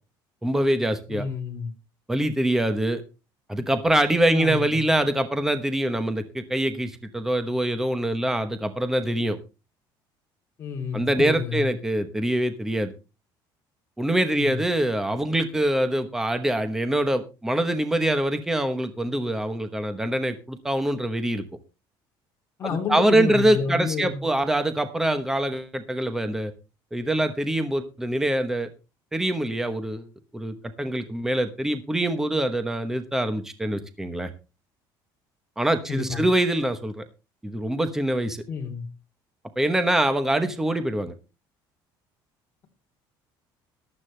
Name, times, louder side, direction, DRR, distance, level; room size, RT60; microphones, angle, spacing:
voice 1, 0.4-1.3 2.1-3.0 3.5-9.4 10.9-12.9 14.0-21.4 22.7-26.5 26.9-28.7 29.1-30.1 30.3-34.3 35.6-37.0 37.4-38.4 39.6-41.1, right 1 dB, 5° right, 9 dB, 1.0 m, -24 dB
voice 2, 1.1-1.7 4.3-4.7 10.6-11.7 14.3-14.6 22.6-24.2 35.9-36.2 38.5-38.8, left 6 dB, 30° left, 2 dB, 3.1 m, -30 dB
14.5 x 12.0 x 3.3 m, 0.30 s
cardioid pair, 180°, 9 cm